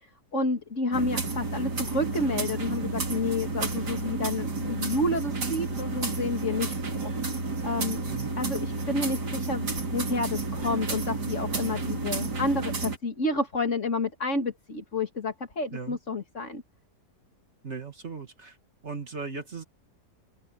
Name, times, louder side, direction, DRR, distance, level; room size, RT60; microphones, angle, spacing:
voice 1, 0.3-7.1 7.6-8.0 8.4-16.6, left 2 dB, 45° left, 2.7 m, -30 dB
sound 1, 0.9-13.0, right 3 dB, 80° right, 3.7 m, -31 dB
voice 2, 17.6-18.6 18.8-19.6, right 4 dB, 45° right, 2.2 m, -37 dB
open air
omnidirectional pair, 1.7 m